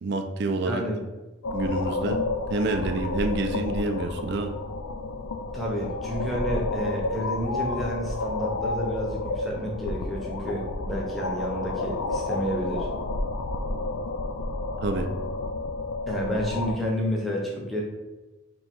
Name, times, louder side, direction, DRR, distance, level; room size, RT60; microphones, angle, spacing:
voice 1, 0.0-0.8 1.5-2.2 2.5-4.5 14.8-15.1, right 2 dB, 50° right, 6 dB, 0.4 m, -27 dB
voice 2, 0.6-1.0 5.5-12.9 16.1-17.8, equal, ahead, -3 dB, 0.6 m, -30 dB
sound 1, 1.4-16.8, left 3 dB, 85° left, 0.4 m, -31 dB
3.0 x 2.7 x 4.4 m, 1.1 s
head